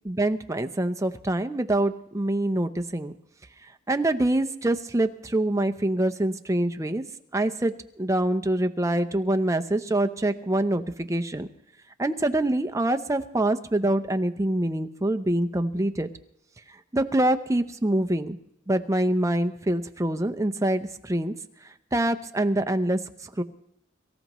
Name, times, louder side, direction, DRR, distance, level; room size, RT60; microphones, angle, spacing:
voice 1, 0.0-3.1 3.9-7.0 7.3-11.5 12.0-16.1 16.9-18.4 18.7-21.3 21.9-23.0 23.4-23.5, right 1 dB, 15° right, 8 dB, 0.6 m, -25 dB
23.5 x 14.5 x 3.1 m, 0.77 s
head